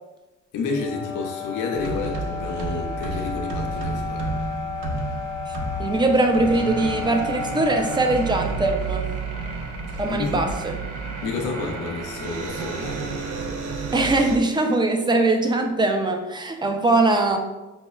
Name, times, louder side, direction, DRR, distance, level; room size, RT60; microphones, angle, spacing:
voice 1, 0.5-4.3 10.1-10.4 11.2-13.1, left 4 dB, 85° left, 1 dB, 0.6 m, -30 dB
sound 1, 0.6-8.1, left 6 dB, 50° right, 1.3 m, -33 dB
sound 2, 1.7-14.4, right 4 dB, 90° right, 0.6 m, -31 dB
voice 2, 5.5-9.1 10.0-10.7 13.9-17.4, right 2 dB, 15° right, 4 dB, 0.4 m, -21 dB
5.5 x 2.1 x 2.3 m, 1.1 s
cardioid pair, 90°, 30 cm